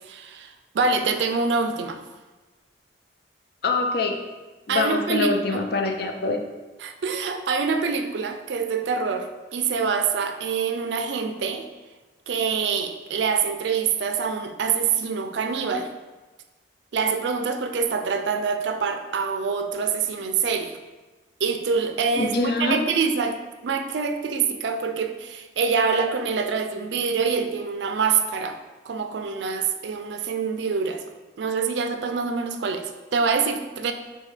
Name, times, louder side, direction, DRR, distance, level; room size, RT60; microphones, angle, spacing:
voice 1, 0.0-2.0 4.7-5.6 6.8-11.7 12.3-15.9 16.9-20.8 21.4-28.6 28.9-31.0 31.4-33.9, right 5 dB, 70° right, 7 dB, 0.4 m, -25 dB
voice 2, 3.6-4.2 4.7-6.4 22.2-22.8, left 3 dB, 55° left, 4 dB, 0.5 m, -24 dB
6.2 x 2.2 x 3.3 m, 1.2 s
head